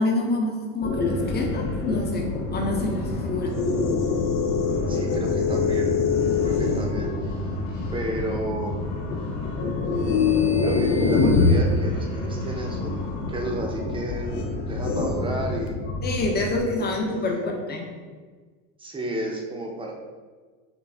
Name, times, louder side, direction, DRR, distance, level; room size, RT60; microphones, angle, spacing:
voice 1, 0.0-3.6 16.0-17.9, left 2 dB, 25° left, 1 dB, 0.8 m, -27 dB
sound 1, 0.8-16.6, left 4 dB, 80° left, 0.7 m, -26 dB
sound 2, 1.0-15.5, left 1 dB, 50° left, 1.3 m, -34 dB
voice 2, 4.9-5.9 6.4-7.4 7.9-8.8 10.6-14.3 14.7-15.8 16.8-16.9 17.1-17.4 18.8-19.9, right 1 dB, 15° right, 0 dB, 0.7 m, -32 dB
6.0 x 2.3 x 3.5 m, 1.5 s
supercardioid pair, 115°, 38 cm